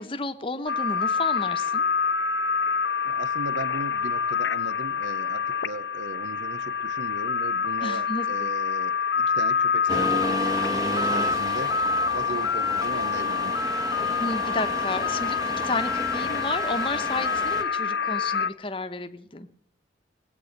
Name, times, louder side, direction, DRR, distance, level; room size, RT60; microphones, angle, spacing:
voice 1, 0.0-1.8 7.8-8.5 14.2-15.4 15.6-19.5, left 3 dB, 30° left, 8 dB, 1.0 m, -32 dB
sound 1, 0.7-18.5, left 6 dB, 85° left, 0.7 m, -26 dB
voice 2, 3.0-11.8 12.1-13.6, right 3 dB, 90° right, 15 dB, 0.8 m, -37 dB
Accelerating revving vroom, 9.9-17.6, right 1 dB, 20° right, 1.4 m, -32 dB
19.5 x 8.4 x 6.6 m, 0.65 s
head